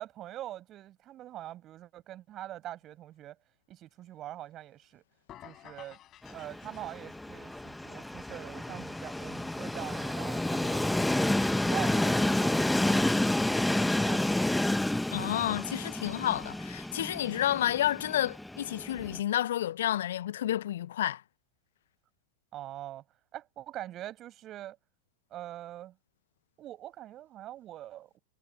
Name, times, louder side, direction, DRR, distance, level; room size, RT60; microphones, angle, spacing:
voice 1, 0.0-3.4 3.7-5.0 5.4-6.0 6.3-11.3 11.6-14.6 22.5-23.0 23.3-24.8 25.3-26.0 26.6-28.2, right 13 dB, 30° right, 6.6 m, -43 dB
sound 1, 5.3-7.4, left 12 dB, 30° left, 7.8 m, -52 dB
Train, 6.2-19.2, left 1 dB, 5° left, 1.4 m, -30 dB
voice 2, 15.1-21.2, left 12 dB, 60° left, 1.2 m, -30 dB
figure-of-eight pair, 90°, 0 cm